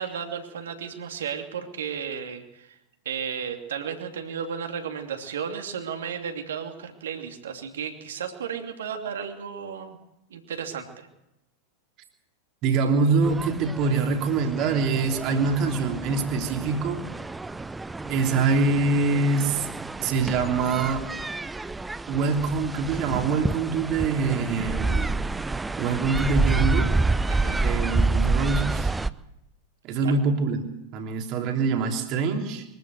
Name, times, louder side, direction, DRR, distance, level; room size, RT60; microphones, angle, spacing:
voice 1, 0.0-2.8 3.0-10.0 10.3-11.1 27.3-27.6 30.0-30.1, right 7 dB, 65° right, 4 dB, 2.8 m, -34 dB
voice 2, 12.6-17.0 18.0-19.7 20.0-21.0 22.1-27.0 27.5-28.9 29.8-32.7, right 4 dB, 40° right, 3 dB, 3.1 m, -25 dB
sound 1, 13.2-29.1, right 3 dB, 10° right, 0.6 m, -28 dB
23.5 x 14.5 x 8.0 m, 0.88 s
figure-of-eight pair, 90°, 0 cm